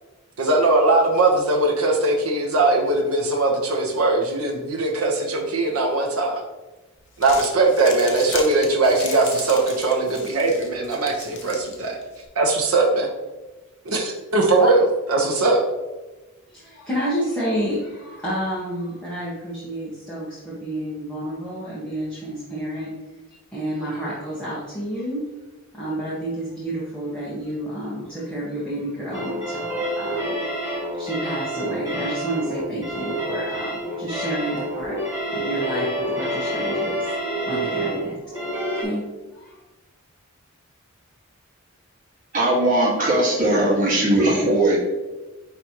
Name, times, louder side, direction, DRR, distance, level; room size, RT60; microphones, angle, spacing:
voice 1, 0.4-6.4 7.2-12.0 12.3-13.1 13.9-15.6, right 2 dB, 85° right, 0 dB, 1.1 m, -20 dB
Crumpling crinkling, 7.0-12.2, left 5 dB, 55° left, 1.0 m, -37 dB
voice 2, 16.5-22.9 23.3-25.2 25.7-30.4 31.0-35.0 35.3-38.4 38.7-39.0 39.3-39.6, right 1 dB, 5° left, -10 dB, 1.5 m, -30 dB
sound 1, 29.1-38.8, right 1 dB, 10° right, 2.0 m, -27 dB
voice 3, 42.3-44.8, right 1 dB, 40° right, -4 dB, 1.7 m, -19 dB
9.9 x 3.4 x 3.0 m, 1.1 s
head